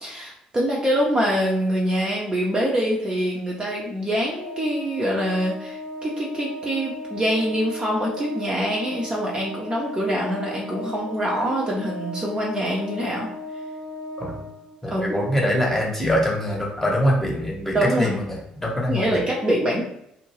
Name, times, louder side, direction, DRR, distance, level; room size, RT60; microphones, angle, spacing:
voice 1, 0.0-13.3 14.9-15.0 17.7-18.2 18.9-19.8, equal, 20° right, -3 dB, 0.7 m, -24 dB
Organ, 4.3-15.0, left 1 dB, 45° left, 0.9 m, -36 dB
voice 2, 14.8-19.2, equal, 10° left, -2 dB, 1.0 m, -24 dB
2.5 x 2.1 x 3.2 m, 0.76 s
figure-of-eight pair, 50°, 4 cm